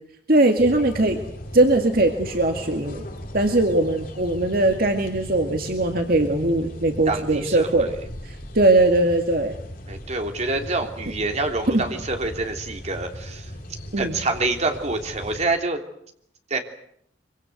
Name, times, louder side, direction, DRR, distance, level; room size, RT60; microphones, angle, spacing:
voice 1, 0.3-1.2 1.5-3.0 3.3-7.9 8.2-9.6 11.7-11.9 13.9-14.2, right 2 dB, 60° right, 4 dB, 2.2 m, -20 dB
sound 1, 0.6-15.4, equal, 55° left, 6.7 m, -38 dB
voice 2, 7.1-8.0 9.9-13.4 14.0-15.8 16.5-16.6, right 3 dB, 40° right, 4 dB, 3.2 m, -26 dB
24.5 x 24.5 x 8.0 m, 0.70 s
head